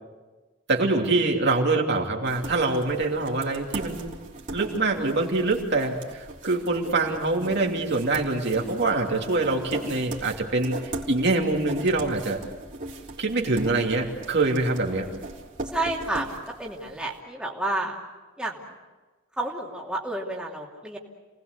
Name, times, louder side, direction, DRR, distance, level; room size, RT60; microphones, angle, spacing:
voice 1, 0.7-4.1 4.5-12.4 13.2-15.1, right 3 dB, 55° right, 0 dB, 3.0 m, -25 dB
sound 1, 2.2-17.1, right 2 dB, 40° right, 3.6 m, -39 dB
voice 2, 15.7-17.9 18.4-18.6 19.4-21.0, right 2 dB, 5° right, -3 dB, 2.8 m, -30 dB
29.0 x 19.5 x 8.2 m, 1.2 s
head